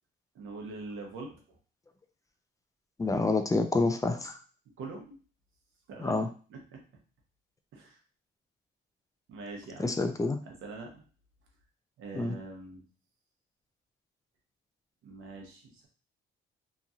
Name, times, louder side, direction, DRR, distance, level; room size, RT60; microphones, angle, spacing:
voice 1, 0.3-1.6 4.8-5.2 5.9-6.2 6.5-6.8 7.7-8.0 9.3-9.9 10.4-11.0 12.0-12.8 15.0-15.9, right 3 dB, 85° right, 1 dB, 0.9 m, -43 dB
voice 2, 3.0-4.4 6.0-6.3 9.8-10.4 12.1-12.3, left 3 dB, 15° left, 7 dB, 0.4 m, -28 dB
3.0 x 2.7 x 2.4 m, 0.38 s
cardioid pair, 90°, 20 cm